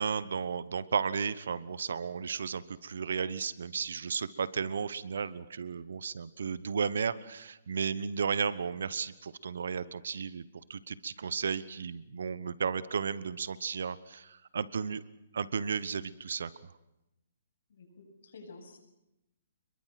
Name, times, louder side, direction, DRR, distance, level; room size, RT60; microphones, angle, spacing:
voice 1, 0.0-10.4 10.7-15.0 15.3-16.5, right 6 dB, 75° right, 16 dB, 1.1 m, -34 dB
voice 2, 17.7-18.8, left 3 dB, 65° left, 3 dB, 8.0 m, -51 dB
28.0 x 22.5 x 6.0 m, 0.91 s
hypercardioid pair, 165°, 0 cm